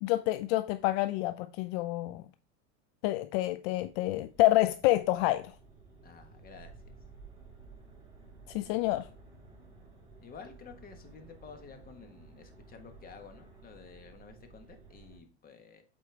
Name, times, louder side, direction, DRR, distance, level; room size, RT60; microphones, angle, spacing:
voice 1, 0.0-2.2 3.0-5.5 8.5-9.1, left 17 dB, 65° left, 0.5 m, -28 dB
sound 1, 3.7-15.2, right 3 dB, 15° right, 3.9 m, -54 dB
voice 2, 6.0-6.9 10.2-15.8, left 5 dB, 25° left, 1.4 m, -51 dB
8.2 x 4.5 x 3.4 m
supercardioid pair, 125°, 34 cm